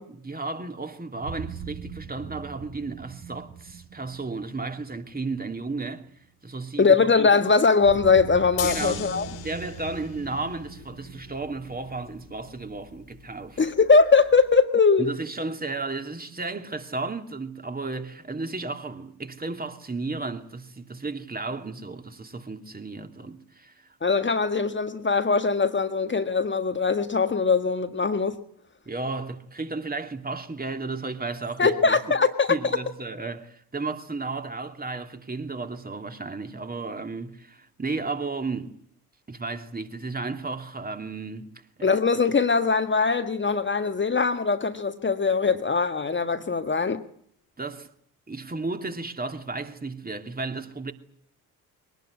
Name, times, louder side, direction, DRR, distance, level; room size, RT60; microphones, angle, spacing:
voice 1, 0.1-6.1 6.4-7.0 8.6-9.0 9.4-13.6 15.0-24.0 28.9-32.0 32.5-38.8 39.3-41.5 41.8-42.0 47.6-47.9 48.3-50.9, right 3 dB, 20° right, 2.7 m, -33 dB
sound 1, 1.2-6.2 7.8-13.5, right 7 dB, 55° right, 3.8 m, -42 dB
voice 2, 6.8-9.3 13.6-15.1 24.0-28.4 31.6-32.5 41.8-47.0, left 4 dB, 25° left, 1.7 m, -21 dB
sound 2, 8.6-14.6, left 12 dB, 60° left, 2.4 m, -40 dB
23.0 x 19.0 x 9.9 m
figure-of-eight pair, 45°, 45 cm